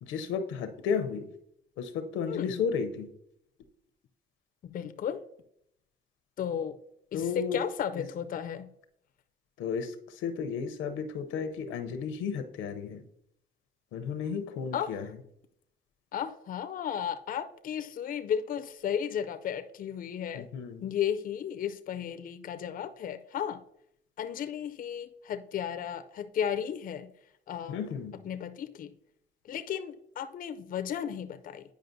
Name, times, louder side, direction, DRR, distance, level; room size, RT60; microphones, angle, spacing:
voice 1, 0.0-1.3 1.8-3.1 7.1-7.6 7.9-8.0 9.6-13.0 13.9-15.1 20.3-20.8 27.7-28.1, left 6 dB, 90° left, 8 dB, 0.6 m, -33 dB
voice 2, 2.3-2.6 4.6-5.2 6.4-6.8 7.1-8.7 14.7-14.9 16.1-20.5 20.8-23.6 24.2-27.1 27.5-27.8 28.2-28.9 29.5-31.6, left 9 dB, 45° left, 9 dB, 0.4 m, -34 dB
9.1 x 5.0 x 2.6 m, 0.74 s
cardioid pair, 90°, 20 cm